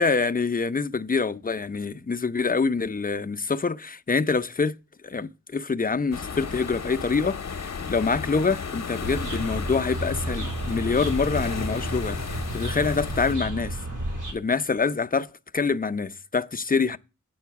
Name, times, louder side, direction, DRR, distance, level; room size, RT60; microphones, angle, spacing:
voice 1, 0.0-4.8 5.0-13.8 14.3-15.3 15.5-17.0, left 4 dB, 30° left, 0.6 m, -26 dB
sound 1, 6.1-13.4, left 5 dB, 60° left, 0.9 m, -35 dB
sound 2, 9.0-14.3, right 1 dB, 85° right, 3.8 m, -31 dB
9.4 x 4.4 x 5.8 m
cardioid pair, 40°, 31 cm